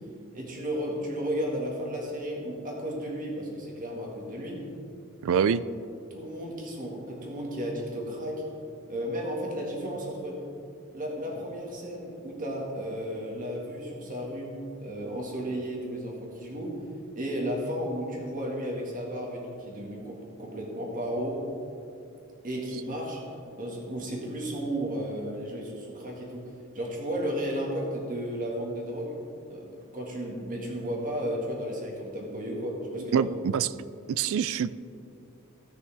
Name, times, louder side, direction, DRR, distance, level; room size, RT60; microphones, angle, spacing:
voice 1, 0.3-4.6 6.1-8.4 8.9-10.4 10.9-16.7 17.2-21.4 22.4-23.2 23.6-29.2 29.5-33.3, equal, 40° right, -2 dB, 1.9 m, -33 dB
voice 2, 5.2-5.6 33.0-33.7 34.1-34.7, right 7 dB, 65° right, 16 dB, 0.3 m, -25 dB
17.0 x 6.3 x 3.5 m, 2.5 s
head